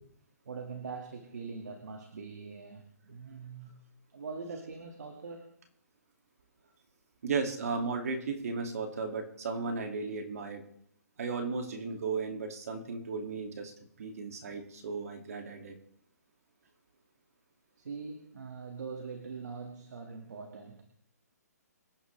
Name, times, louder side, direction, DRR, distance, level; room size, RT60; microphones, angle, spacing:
voice 1, 0.5-3.7 4.1-5.5 17.8-20.8, right 4 dB, 75° right, 4 dB, 2.1 m, -42 dB
voice 2, 7.2-10.6 11.2-13.7 14.0-15.8, right 4 dB, 60° right, 4 dB, 2.6 m, -35 dB
25.0 x 11.0 x 3.4 m, 0.70 s
hypercardioid pair, 165°, 9 cm